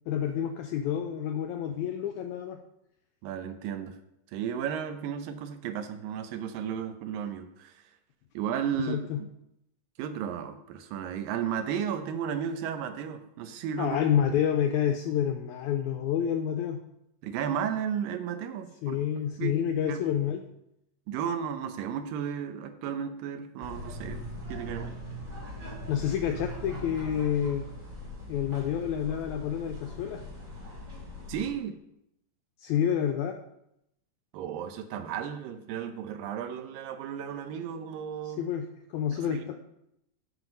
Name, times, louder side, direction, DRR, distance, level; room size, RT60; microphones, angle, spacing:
voice 1, 0.1-2.6 8.9-9.2 13.8-16.8 18.8-20.4 25.9-27.6 28.3-30.2 32.6-33.4 38.2-39.5, left 9 dB, 85° left, 5 dB, 1.7 m, -29 dB
voice 2, 3.2-4.0 4.3-7.8 8.3-9.0 10.0-14.0 17.2-19.0 19.4-19.6 19.9-20.0 21.1-24.9 31.3-31.8 34.3-38.4 39.1-39.4, right 8 dB, 85° right, 8 dB, 2.4 m, -34 dB
sound 1, 23.6-31.5, equal, 40° right, 2.8 m, -41 dB
7.6 x 5.8 x 5.2 m, 0.80 s
omnidirectional pair, 3.9 m